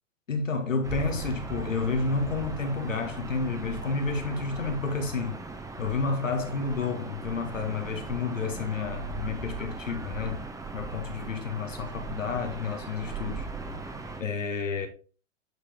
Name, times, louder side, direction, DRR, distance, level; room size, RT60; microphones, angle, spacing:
voice 1, 0.3-5.4 5.8-10.4 10.7-13.5 14.2-14.9, left 4 dB, 90° left, 1.7 m, -30 dB
Gull seagull / Ocean, 0.8-14.2, right 3 dB, 10° right, 0.9 m, -38 dB
8.7 x 4.8 x 3.4 m
hypercardioid pair, 100°, 38 cm